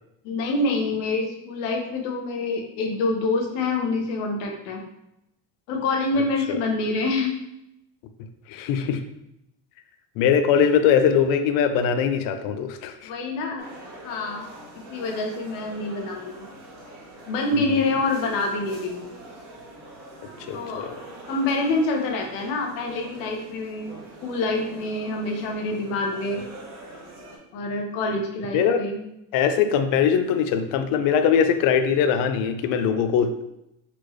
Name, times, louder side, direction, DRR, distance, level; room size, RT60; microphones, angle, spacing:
voice 1, 0.2-4.8 5.7-7.4 13.0-13.6 14.0-14.5 14.7-16.5 17.3-19.1 20.5-20.9 21.3-23.9 24.2-26.4 27.5-29.0, left 2 dB, 75° left, 2 dB, 1.0 m, -26 dB
voice 2, 8.5-9.0 10.2-13.1 17.6-17.7 20.5-20.9 28.5-28.8 29.3-33.3, left 7 dB, 55° left, 8 dB, 0.5 m, -21 dB
sound 1, 13.6-27.4, right 1 dB, 65° right, 1.3 m, -43 dB
4.2 x 3.1 x 3.1 m, 0.84 s
cardioid pair, 170°, 41 cm